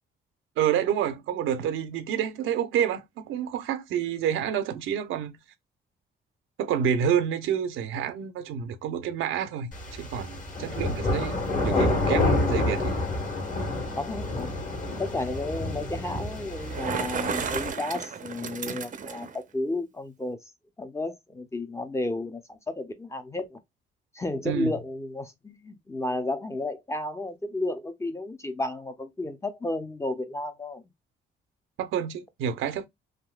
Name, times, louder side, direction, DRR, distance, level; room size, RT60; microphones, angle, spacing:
voice 1, 0.6-5.4 6.6-12.8 24.4-24.7 31.8-32.9, right 9 dB, 85° right, 0.7 m, -28 dB
sound 1, 9.7-17.7, left 2 dB, 40° left, 1.5 m, -28 dB
voice 2, 11.5-12.4 14.0-14.5 15.0-20.4 20.8-23.6 24.1-30.8, left 2 dB, 15° left, 0.6 m, -32 dB
Bicycle, 16.5-19.4, right 6 dB, 40° right, 0.6 m, -33 dB
3.5 x 2.7 x 2.3 m
cardioid pair, 90°, 20 cm